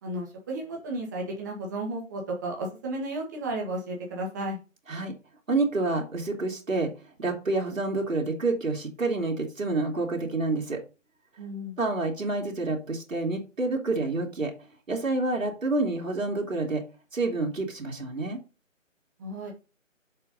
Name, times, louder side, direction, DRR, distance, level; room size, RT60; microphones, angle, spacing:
voice 1, 0.0-4.6 11.4-11.7 19.2-19.5, right 1 dB, 15° right, -1 dB, 1.6 m, -33 dB
voice 2, 5.5-6.9 7.2-10.8 11.8-14.5 14.9-16.8 17.1-18.4, right 3 dB, 70° right, 0 dB, 2.8 m, -28 dB
6.7 x 4.8 x 5.3 m, 0.32 s
figure-of-eight pair, 165°, 40 cm